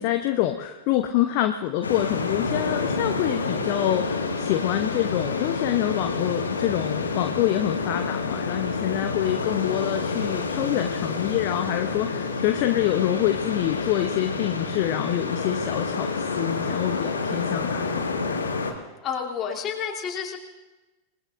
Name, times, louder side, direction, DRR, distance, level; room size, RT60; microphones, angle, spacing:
voice 1, 0.0-18.1, left 13 dB, 45° left, 6 dB, 0.9 m, -26 dB
sound 1, 1.8-18.7, left 4 dB, 75° left, 1.9 m, -28 dB
voice 2, 19.0-20.4, left 7 dB, 30° left, -1 dB, 3.1 m, -30 dB
27.5 x 20.0 x 2.6 m, 1.1 s
figure-of-eight pair, 90°, 0 cm